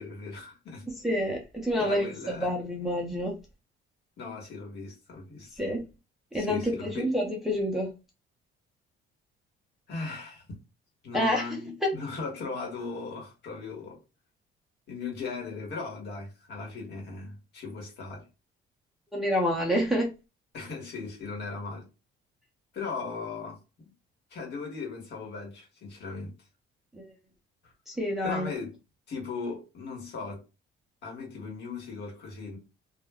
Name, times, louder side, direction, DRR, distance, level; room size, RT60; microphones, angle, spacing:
voice 1, 0.0-0.8 1.2-1.3 1.8-2.5 4.2-5.5 6.3-7.1 9.9-10.4 11.0-14.0 14.9-18.2 20.5-21.9 22.7-23.9 24.3-26.3 27.6-27.7 28.2-28.7 29.1-30.4 31.0-32.6, left 4 dB, 55° left, 1.2 m, -38 dB
voice 2, 1.0-3.3 5.6-5.8 6.3-7.9 11.1-11.4 19.1-20.1 26.9-27.0 27.9-28.5, equal, ahead, 0.5 m, -28 dB
2.3 x 2.1 x 3.4 m
cardioid pair, 170°, 21 cm